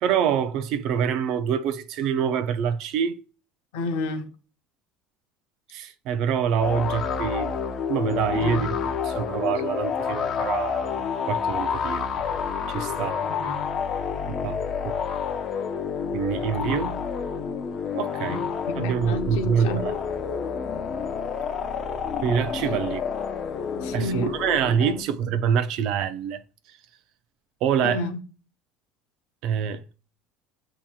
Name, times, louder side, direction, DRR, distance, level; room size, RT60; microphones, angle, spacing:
voice 1, 0.0-3.2 5.7-7.5 7.9-8.7 9.1-12.1 12.7-13.2 14.3-15.0 16.1-17.0 17.9-18.5 18.8-20.0 22.2-23.0 23.9-26.4 26.7-26.8 27.6-28.0 29.4-29.8, right 8 dB, 65° right, 0.4 m, -26 dB
voice 2, 3.7-4.3 8.4-8.6 13.2-13.7 18.3-19.9 23.8-24.4 24.8-25.3 27.8-28.2, left 3 dB, 85° left, 0.7 m, -32 dB
sound 1, 6.6-25.0, left 6 dB, 45° left, 0.5 m, -29 dB
7.2 x 2.9 x 2.3 m
supercardioid pair, 115°, 0 cm